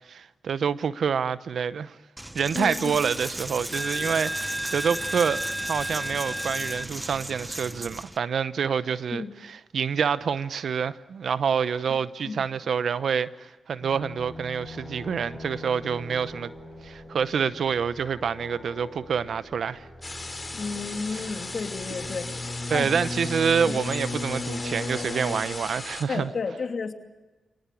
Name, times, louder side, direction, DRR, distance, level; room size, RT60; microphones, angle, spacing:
voice 1, 0.1-2.0 2.3-16.5 16.8-19.9 22.7-26.3, right 6 dB, 75° right, 0.8 m, -27 dB
Coin (dropping), 2.2-8.2, right 1 dB, 15° right, 0.9 m, -32 dB
voice 2, 2.5-3.0 9.1-9.3 12.2-12.4 20.5-22.9 23.7-23.8 26.1-26.9, left 4 dB, 60° left, 2.7 m, -32 dB
sound 1, 13.8-25.4, left 2 dB, 10° left, 6.6 m, -38 dB
sound 2, 20.0-26.0, left 3 dB, 30° left, 4.0 m, -37 dB
26.5 x 18.5 x 8.4 m
cardioid pair, 50°, 0 cm